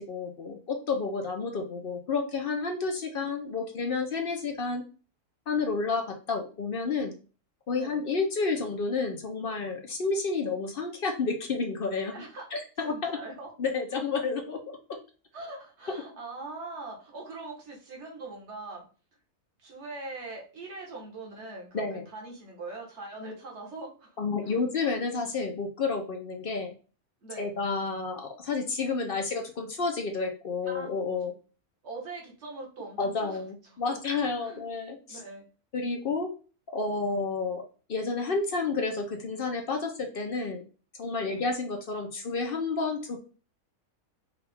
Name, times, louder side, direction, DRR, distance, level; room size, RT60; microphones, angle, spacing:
voice 1, 0.0-4.8 5.5-7.1 7.7-12.1 12.5-13.2 13.6-14.6 21.7-22.1 24.2-26.7 27.4-31.3 33.0-35.2 35.7-36.3 36.7-37.6 37.9-40.6 41.0-43.2, left 4 dB, 55° left, 3 dB, 0.7 m, -30 dB
voice 2, 12.1-12.5 12.8-13.5 15.3-18.8 19.6-24.7 27.2-27.5 30.6-31.0 31.8-33.4 33.6-34.0 34.4-34.7 35.1-35.4 41.2-41.4, right 3 dB, 50° right, -1 dB, 1.5 m, -42 dB
4.8 x 2.4 x 3.4 m, 0.36 s
omnidirectional pair, 1.6 m